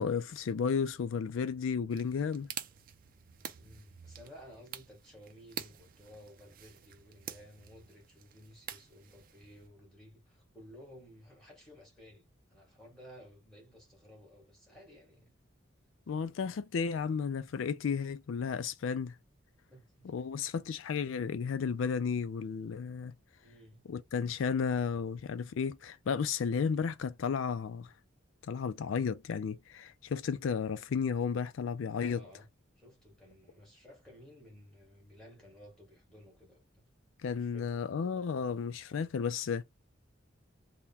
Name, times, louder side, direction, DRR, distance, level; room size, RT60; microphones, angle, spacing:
voice 1, 0.0-2.5 16.1-19.2 20.0-23.1 23.9-27.9 28.4-32.2 37.2-39.6, left 6 dB, 80° left, 0.4 m, -33 dB
sound 1, 1.9-9.7, right 9 dB, 45° right, 0.5 m, -48 dB
voice 2, 3.5-15.3 19.7-20.3 23.4-23.9 32.0-32.5 32.8-36.6 37.4-37.9, equal, 5° left, 1.9 m, -55 dB
3.5 x 2.2 x 4.1 m
head